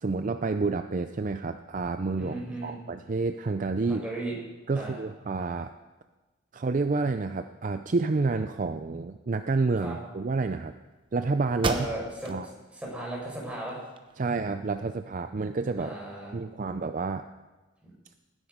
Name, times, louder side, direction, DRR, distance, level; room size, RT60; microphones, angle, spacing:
voice 1, 0.0-2.4 2.6-4.0 4.7-5.7 6.5-10.7 11.1-11.9 12.3-12.5 14.2-15.9 16.3-17.3, right 3 dB, 40° right, 9 dB, 0.4 m, -29 dB
voice 2, 2.2-2.8 3.9-4.4 4.7-5.0 9.8-10.0 11.7-12.3 12.7-13.8 15.8-16.3 17.8-17.9, right 1 dB, 5° right, -3 dB, 4.9 m, -36 dB
sound 1, 11.0-11.1 11.6-12.4 12.9-13.0 13.5-14.4, right 3 dB, 25° right, 0.9 m, -34 dB
19.0 x 10.0 x 5.1 m, 1.2 s
head